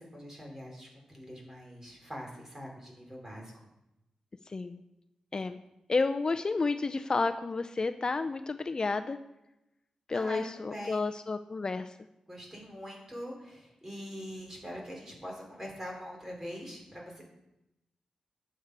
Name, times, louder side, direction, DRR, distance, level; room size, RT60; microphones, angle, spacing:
voice 1, 0.0-3.5 10.1-11.1 12.3-17.2, equal, 20° right, -1 dB, 4.1 m, -43 dB
voice 2, 4.5-4.8 5.3-5.6 5.9-9.2 10.1-11.9, left 3 dB, 40° left, 9 dB, 0.5 m, -31 dB
11.5 x 7.8 x 4.8 m, 0.90 s
cardioid pair, 85°, 2 cm